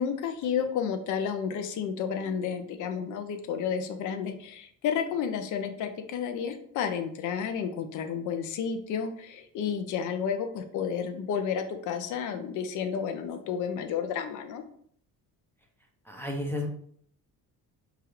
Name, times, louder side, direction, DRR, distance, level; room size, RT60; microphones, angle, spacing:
voice 1, 0.0-14.6, left 7 dB, 55° left, 7 dB, 0.5 m, -31 dB
voice 2, 16.0-16.7, left 1 dB, 5° left, -1 dB, 0.4 m, -32 dB
4.7 x 2.4 x 3.0 m, 0.63 s
cardioid pair, 155°, 36 cm